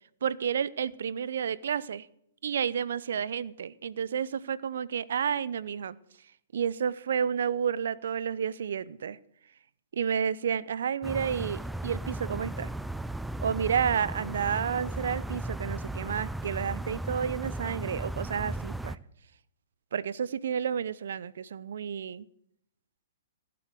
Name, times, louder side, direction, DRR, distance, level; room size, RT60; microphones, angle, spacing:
voice 1, 0.2-2.1 2.4-6.0 6.5-9.2 9.9-12.7 13.4-19.0 19.9-22.3, right 7 dB, 70° right, 19 dB, 0.7 m, -31 dB
sound 1, 11.0-19.0, right 1 dB, 5° right, 0.5 m, -36 dB
15.5 x 7.8 x 7.7 m, 0.72 s
hypercardioid pair, 125°, 0 cm